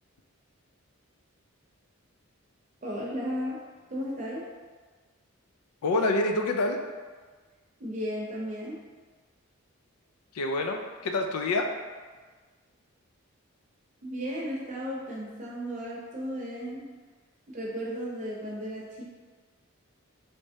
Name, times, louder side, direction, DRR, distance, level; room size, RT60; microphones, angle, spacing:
voice 1, 2.8-3.6 3.9-4.4 7.8-8.8 14.0-16.8 17.5-19.0, equal, 35° right, -4 dB, 0.7 m, -34 dB
voice 2, 5.8-6.8 10.3-11.7, left 2 dB, 85° left, 4 dB, 0.4 m, -27 dB
3.3 x 3.1 x 2.7 m, 1.4 s
head